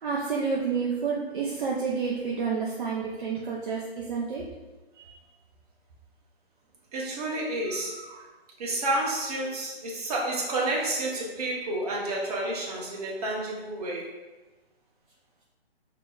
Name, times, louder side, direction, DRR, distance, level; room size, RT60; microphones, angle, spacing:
voice 1, 0.0-4.4 5.0-5.1 8.0-8.3, right 5 dB, 55° right, -4 dB, 0.6 m, -30 dB
voice 2, 6.9-8.0 8.6-14.1, right 2 dB, 40° right, -3 dB, 1.0 m, -30 dB
5.0 x 2.9 x 2.3 m, 1.2 s
figure-of-eight pair, 140°, 31 cm